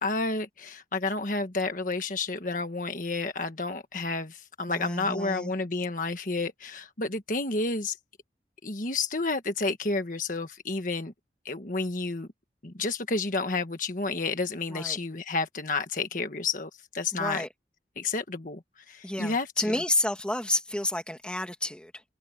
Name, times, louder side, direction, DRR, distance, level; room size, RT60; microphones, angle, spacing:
voice 1, 0.0-8.0 8.6-11.1 11.4-12.3 12.6-17.4 18.0-19.8, left 3 dB, 45° left, 1.5 m, -30 dB
voice 2, 4.7-5.5 14.7-15.0 17.1-17.5 19.0-22.0, left 1 dB, 5° left, 2.4 m, -30 dB
head